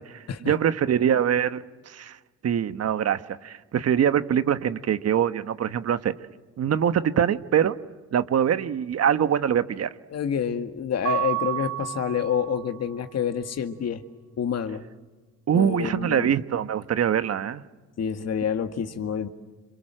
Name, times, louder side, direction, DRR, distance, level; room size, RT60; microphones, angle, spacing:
voice 1, 0.5-2.2 2.4-6.1 6.6-7.8 8.1-9.9 15.5-17.6, right 9 dB, 55° right, 12 dB, 1.2 m, -23 dB
voice 2, 10.1-14.0 14.4-14.9 15.5-16.3 18.0-19.3, left 7 dB, 55° left, 8 dB, 2.0 m, -28 dB
Mallet percussion, 11.1-12.9, right 15 dB, 90° right, 4.1 m, -30 dB
28.0 x 26.5 x 7.6 m, 1.3 s
cardioid pair, 90°, 30 cm